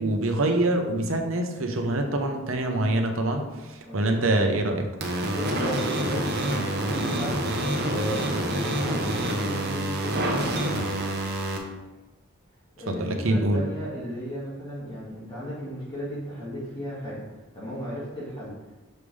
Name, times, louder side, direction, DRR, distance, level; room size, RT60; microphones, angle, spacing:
voice 1, 0.0-4.9 12.9-13.6, right 1 dB, 85° right, 4 dB, 0.9 m, -25 dB
voice 2, 3.8-4.2 5.3-10.7 12.8-17.2 17.5-18.5, equal, 25° left, -9 dB, 1.9 m, -35 dB
sound 1, 5.0-11.6, right 1 dB, 55° right, 0.9 m, -27 dB
6.6 x 5.4 x 3.3 m, 1.1 s
head